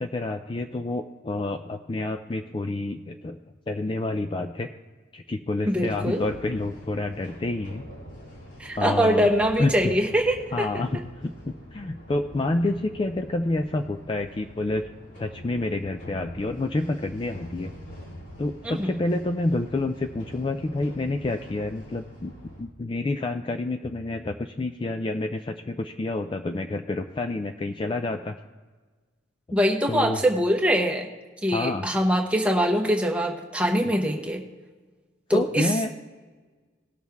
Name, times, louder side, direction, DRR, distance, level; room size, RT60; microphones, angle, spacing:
voice 1, 0.0-3.4 3.7-4.7 5.1-7.8 8.8-9.3 9.6-9.7 10.5-14.9 15.2-17.7 18.4-22.3 22.6-28.4 29.9-30.2 31.5-31.9 35.3-35.9, left 2 dB, 25° left, 6 dB, 0.4 m, -28 dB
voice 2, 5.7-6.2 8.6-10.8 18.6-19.0 29.5-31.1 31.4-34.4 35.3-35.9, equal, 5° right, 1 dB, 1.1 m, -23 dB
sound 1, 5.8-22.6, equal, 70° left, 3.2 m, -45 dB
18.5 x 6.4 x 3.5 m, 1.4 s
head